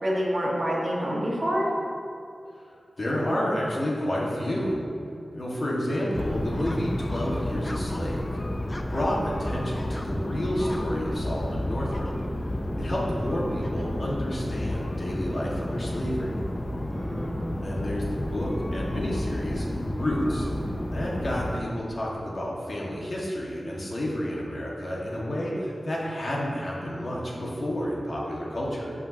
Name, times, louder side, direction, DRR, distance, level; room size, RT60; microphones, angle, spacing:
voice 1, 0.0-1.7 16.9-17.5, equal, 40° right, -4 dB, 1.6 m, -27 dB
voice 2, 2.6-4.8 5.3-8.4 8.8-12.1 12.8-16.4 17.6-20.5 20.9-28.9, equal, 50° left, -5 dB, 1.7 m, -30 dB
sound 1, 6.1-21.6, left 1 dB, 25° left, 0.5 m, -31 dB
11.0 x 5.8 x 2.9 m, 2.4 s
wide cardioid pair, 90°, 0 cm